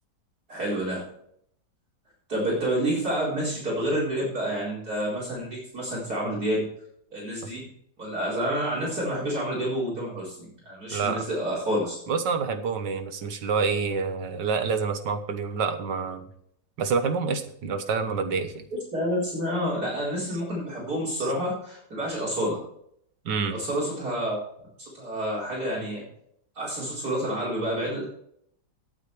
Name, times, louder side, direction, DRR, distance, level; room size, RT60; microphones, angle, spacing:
voice 1, 0.5-1.0 2.3-6.7 7.1-7.6 8.0-12.0 18.9-22.6 23.5-24.4 24.8-26.0 26.6-28.1, right 1 dB, 60° right, -5 dB, 4.8 m, -28 dB
voice 2, 10.9-11.3 12.1-16.3 16.8-18.7 20.3-20.4 21.2-21.3 23.3-23.6, right 5 dB, 75° right, 9 dB, 1.8 m, -27 dB
17.5 x 8.2 x 3.3 m, 0.69 s
omnidirectional pair, 1.9 m